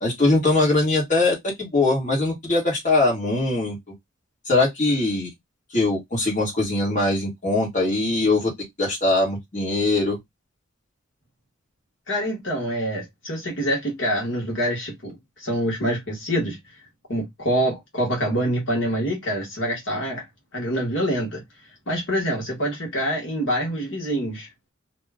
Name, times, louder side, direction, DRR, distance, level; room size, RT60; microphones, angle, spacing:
voice 1, 0.0-3.8 4.5-5.3 5.7-8.5 8.8-10.2, left 2 dB, 35° left, 1.4 m, -21 dB
voice 2, 12.1-16.6 17.1-20.2 20.5-21.4 21.9-24.5, equal, 60° left, 1.3 m, -26 dB
2.7 x 2.3 x 3.5 m
head